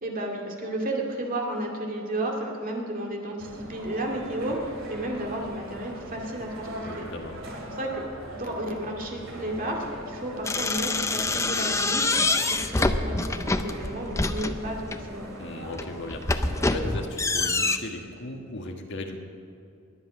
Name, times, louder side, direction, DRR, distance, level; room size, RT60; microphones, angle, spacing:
voice 1, 0.0-7.1 7.7-8.0 8.3-15.3, right 1 dB, 45° right, 0 dB, 2.2 m, -32 dB
sound 1, 3.4-17.1, right 1 dB, 70° right, 2.7 m, -41 dB
voice 2, 6.8-7.4 15.4-19.2, left 2 dB, 60° left, 3 dB, 1.4 m, -37 dB
sound 2, 10.5-15.0 15.6-17.8, left 3 dB, 15° left, 0.5 m, -26 dB
21.5 x 8.0 x 6.1 m, 2.7 s
head